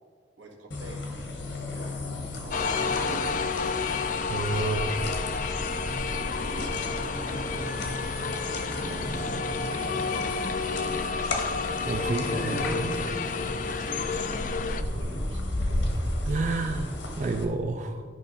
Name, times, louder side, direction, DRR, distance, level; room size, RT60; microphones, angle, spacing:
voice 1, 0.4-1.1 1.7-2.0 2.3-4.2 6.0-7.8 8.7-9.3 9.6-10.9 12.0-12.9 13.6-16.2, right 1 dB, 80° right, 0 dB, 1.6 m, -44 dB
sound 1, 0.7-17.4, left 1 dB, 75° left, 1.3 m, -34 dB
sound 2, 2.5-14.8, left 5 dB, 40° left, 0.4 m, -30 dB
sound 3, 4.1-13.9, right 3 dB, 60° right, 1.0 m, -53 dB
voice 2, 4.3-5.1 11.8-13.2 16.2-18.0, right 3 dB, 40° right, 5 dB, 0.4 m, -30 dB
12.5 x 5.4 x 4.0 m, 2.1 s
head